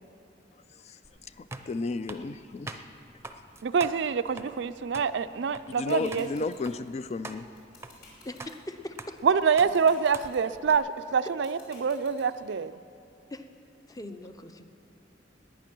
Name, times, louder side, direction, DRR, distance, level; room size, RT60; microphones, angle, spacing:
voice 1, 0.7-2.9 5.8-7.5, left 4 dB, 35° left, 13 dB, 0.3 m, -34 dB
sound 1, 1.0-10.8, right 2 dB, 15° right, 0.6 m, -46 dB
voice 2, 3.6-6.3 9.2-12.7, right 6 dB, 70° right, 13 dB, 0.4 m, -26 dB
sound 2, 5.5-12.5, left 3 dB, 60° left, 4.4 m, -52 dB
voice 3, 8.2-9.2 11.2-11.3 13.3-13.5 13.9-14.7, left 1 dB, 20° left, 8 dB, 0.7 m, -41 dB
19.0 x 9.8 x 6.1 m, 2.6 s
head